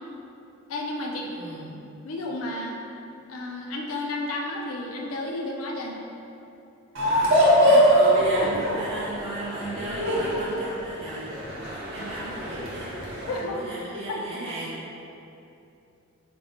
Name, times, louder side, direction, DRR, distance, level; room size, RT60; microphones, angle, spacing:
voice 1, 0.7-1.3 2.0-2.8 3.3-6.0 8.5-8.6 13.3-13.6 14.1-14.2, left 2 dB, 80° left, 0 dB, 0.4 m, -32 dB
voice 2, 1.3-1.8 7.1-11.3 11.7-13.0 13.3-15.0, right 2 dB, 30° right, -7 dB, 0.3 m, -35 dB
sound 1, 6.9-13.4, equal, 65° right, 0.8 m, -23 dB
4.2 x 2.0 x 2.8 m, 2.8 s
head